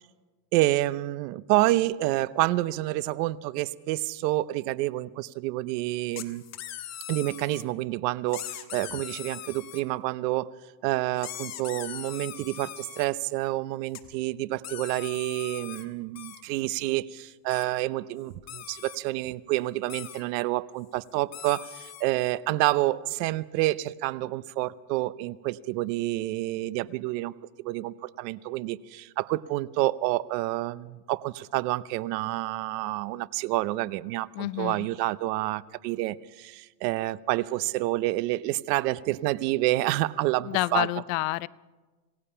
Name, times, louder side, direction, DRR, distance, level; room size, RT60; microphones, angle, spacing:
voice 1, 0.5-6.4 7.1-10.5 10.8-27.3 27.6-40.9, right 17 dB, 75° right, 18 dB, 0.9 m, -28 dB
sound 1, 6.1-7.6 8.3-9.8 11.2-13.1 13.9-14.1 14.6-15.9 16.1-16.4 17.5-17.6 18.3-19.0 19.9-20.2 21.0-21.1 21.3-22.0, left 11 dB, 30° left, 1.5 m, -40 dB
voice 2, 34.4-34.9 40.4-41.5, left 21 dB, 55° left, 19 dB, 0.6 m, -28 dB
26.5 x 18.0 x 5.7 m, 1.3 s
cardioid pair, 160°, 50 cm